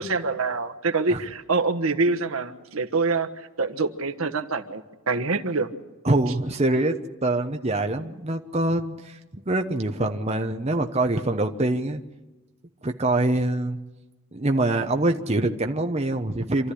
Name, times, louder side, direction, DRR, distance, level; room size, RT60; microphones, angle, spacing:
voice 1, 0.0-5.7, right 3 dB, 75° right, 7 dB, 1.3 m, -25 dB
voice 2, 6.0-6.9 7.2-12.0 12.8-13.8 14.3-16.7, right 2 dB, 30° right, 5 dB, 0.9 m, -24 dB
27.0 x 13.5 x 10.0 m, 1.1 s
head